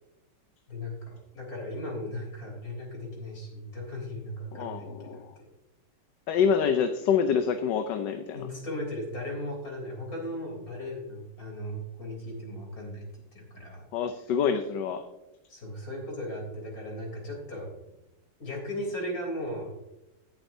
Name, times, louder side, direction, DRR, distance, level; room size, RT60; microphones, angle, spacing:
voice 1, 0.7-5.5 8.3-13.1 13.3-13.8 15.5-17.7 18.4-19.7, left 1 dB, 45° left, -1 dB, 4.0 m, -37 dB
voice 2, 4.5-5.3 6.3-8.5 13.9-15.0, left 7 dB, 70° left, 7 dB, 1.3 m, -26 dB
17.5 x 7.8 x 2.7 m, 0.95 s
omnidirectional pair, 2.1 m